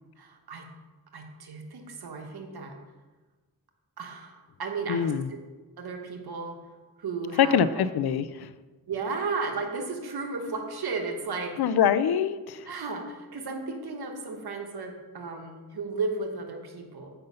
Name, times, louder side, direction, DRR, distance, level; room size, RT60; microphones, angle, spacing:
voice 1, 0.2-0.7 1.1-2.8 4.0-5.1 5.8-6.6 7.0-7.8 8.9-11.6 12.7-17.1, right 4 dB, 90° right, 3 dB, 1.2 m, -34 dB
voice 2, 4.9-5.3 7.4-8.5 11.6-12.7, left 8 dB, 85° left, 15 dB, 0.5 m, -24 dB
7.9 x 5.3 x 5.5 m, 1.3 s
cardioid pair, 55°, 37 cm